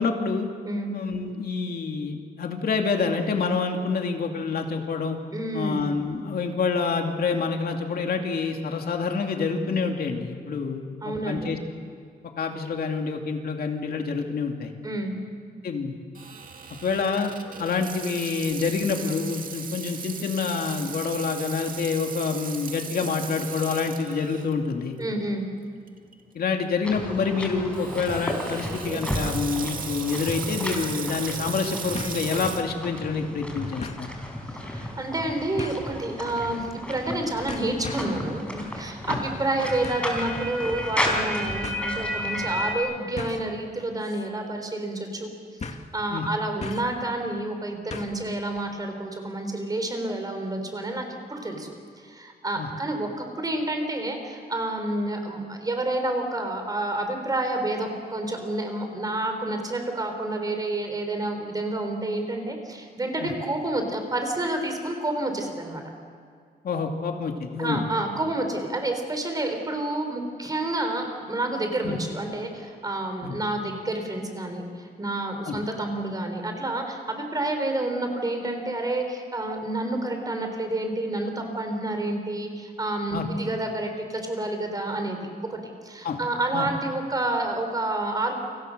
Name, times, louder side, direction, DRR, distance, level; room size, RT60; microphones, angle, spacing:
voice 1, 0.0-0.5 0.9-5.2 5.5-11.6 12.4-14.7 15.6-15.9 16.8-17.3 17.6-25.0 26.3-34.1 39.1-39.2 46.1-46.3 52.6-52.7 63.2-63.3 66.6-67.9 71.8-72.0 73.2-73.4 75.4-75.6 83.1-83.3 86.0-86.2 86.5-86.7, left 5 dB, 65° left, 3 dB, 2.6 m, -27 dB
voice 2, 5.3-5.8 11.0-11.5 14.8-15.1 25.0-25.5 34.5-45.3 45.9-51.7 52.0-65.8 67.6-88.3, right 2 dB, 25° right, 4 dB, 4.3 m, -29 dB
Water tap faucet / Sink (filling or washing), 16.1-24.5 25.0-25.1 25.9-26.1 27.7-32.6, right 6 dB, 55° right, 2.3 m, -37 dB
sound 1, 26.8-42.8, left 1 dB, 5° left, 4.5 m, -33 dB
sound 2, 31.9-32.3 32.7-32.8 33.8-34.1 35.6-35.9 36.9-37.1 37.5-38.2 39.8-40.1 41.1-41.2 41.6-41.8 43.2-43.5 44.0-44.3 44.5-44.6 45.6-45.9 46.6-47.0 47.9-48.3 48.6-48.7, left 4 dB, 45° left, 1.9 m, -37 dB
29.5 x 25.5 x 6.7 m, 2.1 s
wide cardioid pair, 155°, 17 cm